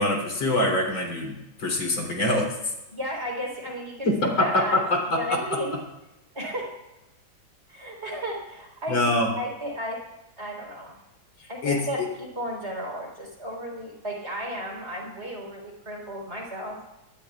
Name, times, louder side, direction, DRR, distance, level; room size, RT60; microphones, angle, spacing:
voice 1, 0.0-2.5 4.1-5.4 8.9-9.3 11.6-11.8, left 1 dB, 70° left, 0 dB, 4.4 m, -24 dB
voice 2, 2.9-4.8 5.2-5.8 6.3-6.7 7.7-10.0 10.4-11.0 11.5-16.8, equal, 30° right, -1 dB, 4.4 m, -34 dB
23.0 x 19.0 x 2.4 m, 0.98 s
omnidirectional pair, 2.2 m